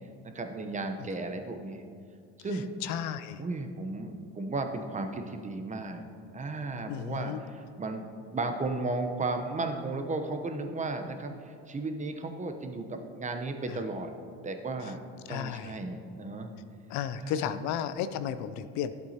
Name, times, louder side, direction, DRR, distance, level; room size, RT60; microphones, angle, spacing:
voice 1, 0.2-1.9 2.4-2.7 3.4-6.1 6.3-8.0 8.3-14.1 14.4-15.0 15.3-16.5 17.2-17.5, right 2 dB, 20° right, 6 dB, 0.9 m, -34 dB
voice 2, 2.8-3.4 6.9-7.4 13.7-13.8 15.3-15.8 16.9-18.9, left 9 dB, 60° left, 12 dB, 0.5 m, -33 dB
12.0 x 8.0 x 2.9 m, 2.5 s
supercardioid pair, 85°, 32 cm